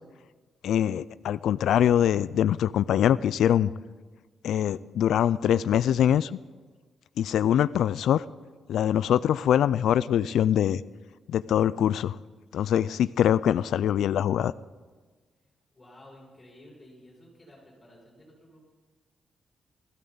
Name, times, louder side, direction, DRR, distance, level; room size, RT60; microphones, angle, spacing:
voice 1, 0.6-3.7 4.4-6.4 7.2-8.2 8.7-10.8 11.3-12.2 12.5-14.5, left 10 dB, 80° left, 16 dB, 0.3 m, -23 dB
voice 2, 15.7-18.6, left 1 dB, 15° left, -5 dB, 5.6 m, -52 dB
16.5 x 14.5 x 4.0 m, 1.4 s
wide cardioid pair, 170°, 0 cm